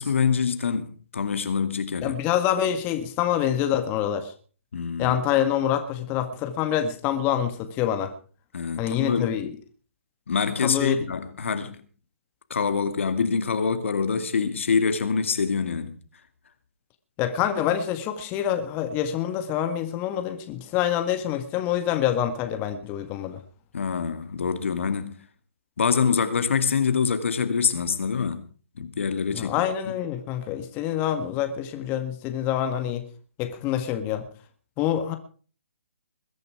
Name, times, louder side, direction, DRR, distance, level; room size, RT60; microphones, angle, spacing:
voice 1, 0.0-2.2 4.7-5.2 8.5-9.4 10.3-11.8 12.5-16.0 23.7-25.2 25.8-28.5 28.8-29.5 29.9-30.0, left 6 dB, 70° left, 2.3 m, -25 dB
voice 2, 2.0-4.3 5.0-8.1 8.8-9.5 10.6-11.0 17.2-23.4 29.4-33.0 33.4-34.2 34.8-35.2, left 10 dB, 25° left, 1.7 m, -26 dB
21.5 x 10.5 x 4.9 m
hypercardioid pair, 140°, 7 cm